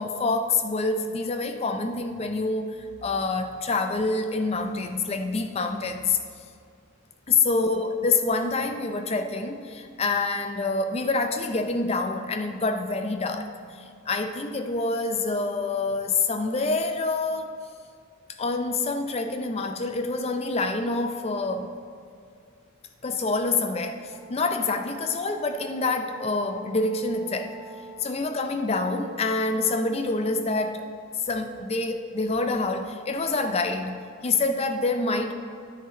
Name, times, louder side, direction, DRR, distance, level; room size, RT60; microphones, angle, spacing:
voice 1, 0.0-6.2 7.3-13.5 14.1-17.5 18.4-21.8 23.0-27.6 28.0-30.9 31.3-35.3, left 3 dB, 30° left, 7 dB, 0.5 m, -26 dB
Brass instrument, 24.0-28.3, right 2 dB, 65° left, 2.4 m, -46 dB
10.0 x 9.0 x 3.0 m, 2.3 s
head